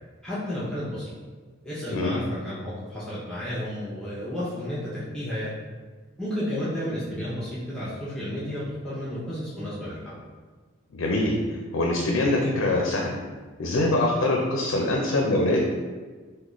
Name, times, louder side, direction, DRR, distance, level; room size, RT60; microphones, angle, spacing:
voice 1, 0.2-1.1 1.6-5.5 6.2-10.2, equal, 5° left, -10 dB, 0.5 m, -32 dB
voice 2, 10.9-11.4 11.7-13.2 13.6-15.7, left 2 dB, 75° left, 0 dB, 0.4 m, -23 dB
3.6 x 2.2 x 3.0 m, 1.4 s
head